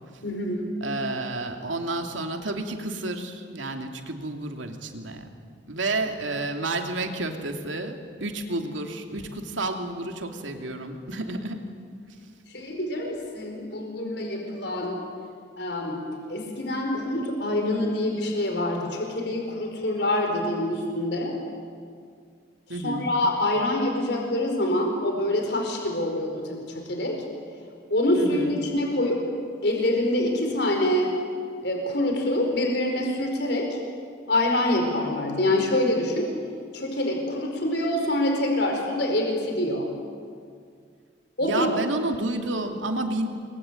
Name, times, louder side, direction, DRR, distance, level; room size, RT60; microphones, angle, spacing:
voice 1, 0.2-0.7 12.5-15.0 15.6-21.3 22.7-27.2 27.9-29.2 29.6-31.1 31.6-33.8 34.3-36.3 36.7-39.9 41.4-41.7, left 1 dB, 60° left, 2 dB, 4.9 m, -26 dB
voice 2, 0.8-5.3 5.7-11.6 22.7-23.1 28.2-28.6 41.4-43.3, right 2 dB, 85° right, 4 dB, 2.8 m, -30 dB
28.5 x 22.0 x 9.3 m, 2.2 s
head